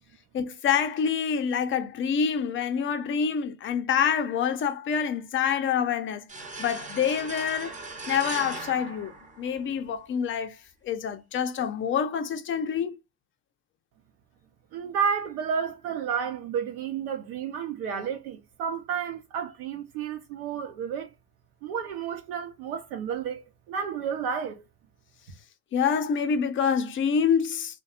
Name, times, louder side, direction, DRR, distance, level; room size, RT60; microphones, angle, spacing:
voice 1, 0.3-6.2 6.6-7.7 8.1-9.1 9.4-10.6 10.8-13.0 25.7-27.8, left 7 dB, 30° left, 0.5 m, -26 dB
sound 1, 6.3-9.9, right 3 dB, 20° right, 0.6 m, -38 dB
voice 2, 14.7-21.1 21.6-24.6, right 7 dB, 70° right, 0.7 m, -31 dB
2.6 x 2.2 x 2.4 m
hypercardioid pair, 95°, 45 cm